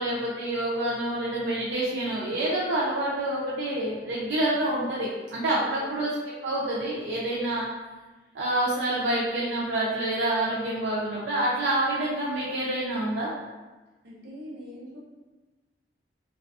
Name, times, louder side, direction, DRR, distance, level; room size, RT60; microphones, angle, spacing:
voice 1, 0.0-6.1 6.4-7.7 8.3-13.3, right 1 dB, 90° right, -7 dB, 0.5 m, -27 dB
voice 2, 5.6-6.0 14.0-15.0, equal, 65° right, -6 dB, 0.8 m, -43 dB
2.4 x 2.3 x 2.3 m, 1.2 s
head